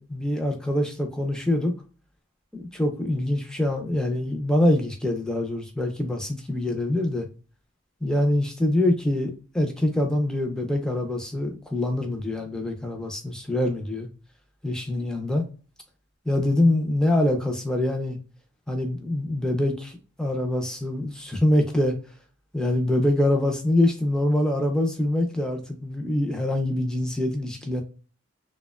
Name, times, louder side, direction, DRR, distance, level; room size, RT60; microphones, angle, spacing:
voice 1, 0.0-1.7 2.6-7.3 8.0-14.1 14.6-15.4 16.3-18.2 18.7-21.9 22.5-27.8, left 1 dB, 5° left, 2 dB, 0.4 m, -24 dB
2.8 x 2.1 x 2.2 m, 0.36 s
head